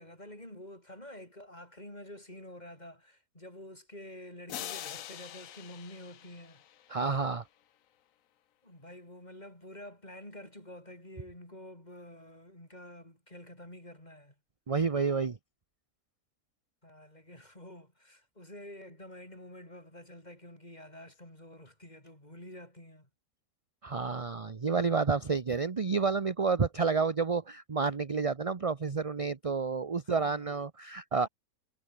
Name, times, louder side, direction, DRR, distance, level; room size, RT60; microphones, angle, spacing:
voice 1, 0.0-6.6 8.6-14.3 16.8-23.1 30.0-30.5, left 1 dB, 25° left, 8.0 m, -49 dB
sound 1, 4.5-7.4, left 11 dB, 65° left, 1.1 m, -44 dB
voice 2, 6.9-7.4 14.7-15.4 23.8-31.3, right 5 dB, 30° right, 0.7 m, -30 dB
omnidirectional pair, 1.6 m